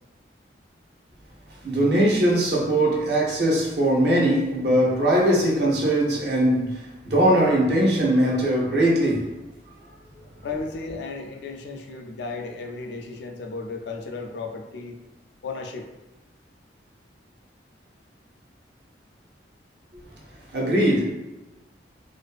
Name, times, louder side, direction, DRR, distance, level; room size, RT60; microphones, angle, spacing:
voice 1, 1.5-9.3 20.5-21.1, right 1 dB, 65° right, 0.7 m, -21 dB
voice 2, 10.4-15.0 15.4-15.9, left 3 dB, 65° left, 0.3 m, -34 dB
2.5 x 2.3 x 2.3 m
head